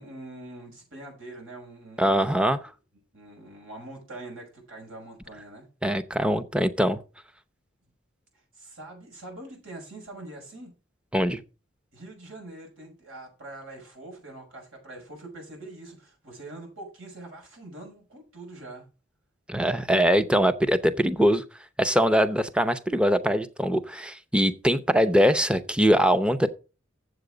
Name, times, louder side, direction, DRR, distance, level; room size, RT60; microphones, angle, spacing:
voice 1, 0.0-2.2 3.1-5.6 8.5-10.7 11.9-18.8, right 2 dB, 80° right, 6.0 m, -43 dB
voice 2, 2.0-2.6 5.8-7.0 11.1-11.4 19.5-21.4 21.8-26.5, equal, 5° right, 0.6 m, -22 dB
8.0 x 7.8 x 5.0 m
head